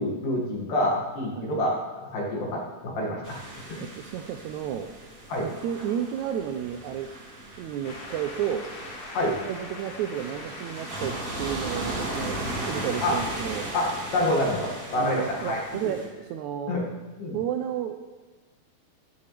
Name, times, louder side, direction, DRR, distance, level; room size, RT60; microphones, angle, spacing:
voice 1, 0.0-3.4 3.7-3.8 5.3-5.5 9.1-9.4 13.0-13.2 13.7-15.6 16.7-16.8 17.2-17.4, left 1 dB, 70° left, -2 dB, 3.7 m, -27 dB
sound 1, 3.2-16.1, right 1 dB, 25° right, 2.3 m, -37 dB
voice 2, 3.8-4.9 5.4-7.1 7.6-8.7 9.4-12.4 12.7-13.7 14.9-16.8 17.3-18.1, right 9 dB, 80° right, 5 dB, 1.7 m, -32 dB
sound 2, 7.8-14.6, left 2 dB, 90° left, 3.7 m, -44 dB
14.5 x 11.0 x 3.4 m, 1.2 s
omnidirectional pair, 4.0 m